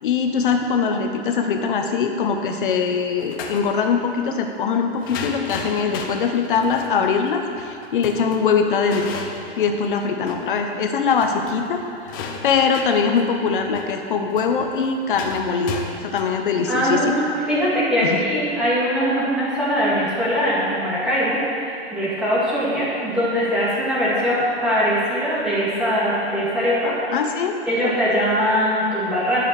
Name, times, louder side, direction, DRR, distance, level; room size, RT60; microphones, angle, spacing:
voice 1, 0.0-9.2 9.6-11.8 12.4-17.2 18.0-18.2 27.1-27.6, left 5 dB, 50° left, 4 dB, 1.0 m, -22 dB
sound 1, 3.2-3.7 5.0-10.6 10.9-11.0 11.2-17.6, left 5 dB, 20° left, 0.6 m, -35 dB
voice 2, 16.7-26.9 27.7-29.4, equal, 5° right, -9 dB, 2.2 m, -21 dB
12.0 x 6.8 x 8.1 m, 2.6 s
hypercardioid pair, 175°, 33 cm